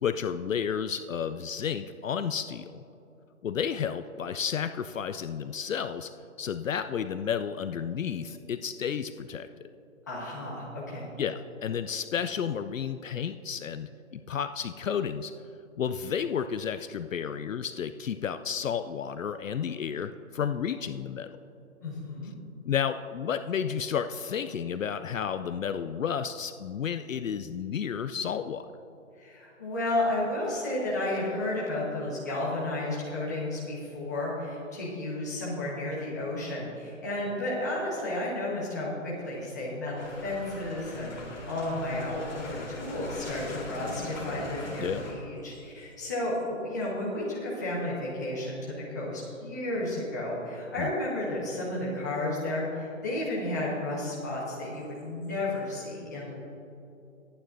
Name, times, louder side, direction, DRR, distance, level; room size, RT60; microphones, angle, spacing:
voice 1, 0.0-2.8 3.4-6.1 6.4-9.5 11.2-15.3 15.8-21.4 22.7-28.7 44.8-45.0 50.8-50.9, left 7 dB, 70° left, 10 dB, 0.5 m, -32 dB
voice 2, 10.1-11.0 21.8-22.3 29.2-56.3, left 1 dB, 15° left, -7 dB, 1.2 m, -32 dB
sound 1, 40.0-45.1, left 2 dB, 30° left, 2.3 m, -40 dB
21.0 x 9.0 x 2.6 m, 2.9 s
hypercardioid pair, 180°, 41 cm